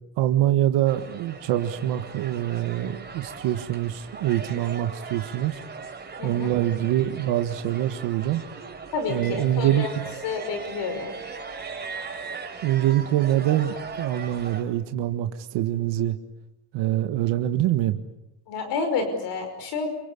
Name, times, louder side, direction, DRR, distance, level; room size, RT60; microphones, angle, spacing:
voice 1, 0.2-5.6 6.2-8.4 9.1-9.9 12.6-16.2 16.7-18.0, right 13 dB, 85° right, 8 dB, 1.7 m, -24 dB
sound 1, 0.9-14.6, right 4 dB, 25° right, 5.1 m, -39 dB
voice 2, 8.9-9.9 10.2-11.2 18.5-19.9, left 4 dB, 80° left, 7 dB, 5.4 m, -29 dB
27.5 x 25.0 x 8.5 m, 0.89 s
cardioid pair, 125°, 41 cm